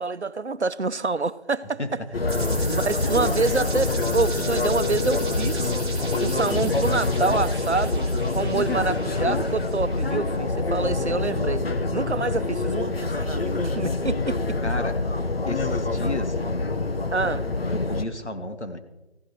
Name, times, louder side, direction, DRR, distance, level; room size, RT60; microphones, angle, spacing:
voice 1, 0.0-1.8 2.7-5.7 6.2-11.6 11.9-14.6 17.1-17.4, right 4 dB, 90° right, 0.9 m, -27 dB
sound 1, 2.1-18.0, left 3 dB, 60° left, 1.1 m, -26 dB
sound 2, 2.3-10.1, right 3 dB, 25° right, 5.4 m, -37 dB
voice 2, 14.6-14.9 15.5-16.4 17.7-18.8, left 1 dB, 90° left, 2.1 m, -32 dB
15.0 x 10.5 x 6.4 m
figure-of-eight pair, 165°, 33 cm